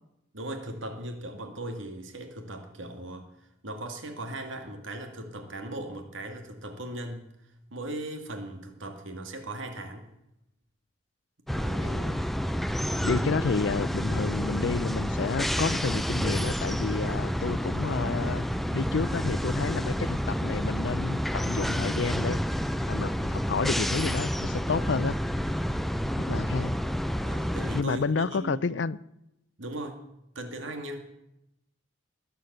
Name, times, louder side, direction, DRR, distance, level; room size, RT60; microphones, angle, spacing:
voice 1, 0.3-7.3 7.7-10.1 11.5-12.0 25.3-25.6 27.2-28.6 29.6-30.0 30.4-31.1, right 1 dB, 75° right, 5 dB, 2.0 m, -38 dB
sound 1, 11.5-27.8, equal, ahead, 0.5 m, -29 dB
voice 2, 11.8-12.2 13.0-18.4 18.7-22.4 22.9-25.2 26.3-26.8 27.7-29.0, left 4 dB, 65° left, 18 dB, 0.5 m, -30 dB
21.0 x 8.2 x 8.0 m, 0.86 s
head